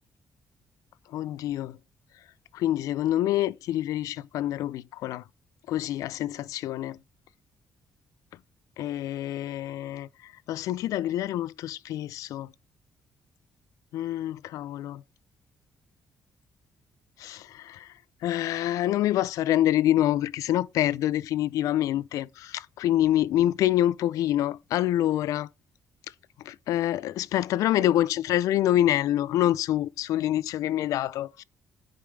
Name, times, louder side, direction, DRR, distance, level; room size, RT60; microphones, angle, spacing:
voice 1, 1.1-1.8 2.5-5.2 5.7-7.0 8.8-10.1 10.5-12.5 13.9-15.0 17.2-17.9 18.2-25.5 26.5-31.4, left 13 dB, 85° left, 0.4 m, -26 dB
10.0 x 5.2 x 3.3 m
cardioid pair, 130°, 6 cm